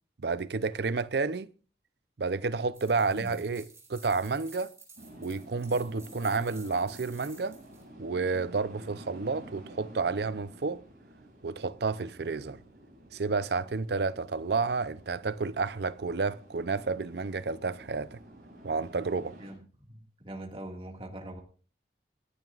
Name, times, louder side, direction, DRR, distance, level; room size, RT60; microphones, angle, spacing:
voice 1, 0.2-1.5 2.2-4.7 5.2-7.6 8.0-10.8 11.4-12.6 13.1-18.2 18.6-19.3, right 4 dB, 65° right, 0.6 m, -30 dB
sound 1, 2.7-7.8, right 4 dB, 15° right, 4.6 m, -52 dB
voice 2, 3.1-3.4 19.4-21.4, right 1 dB, 30° right, 2.0 m, -43 dB
sound 2, 5.0-19.5, right 1 dB, 50° right, 7.9 m, -51 dB
28.0 x 11.0 x 2.4 m
head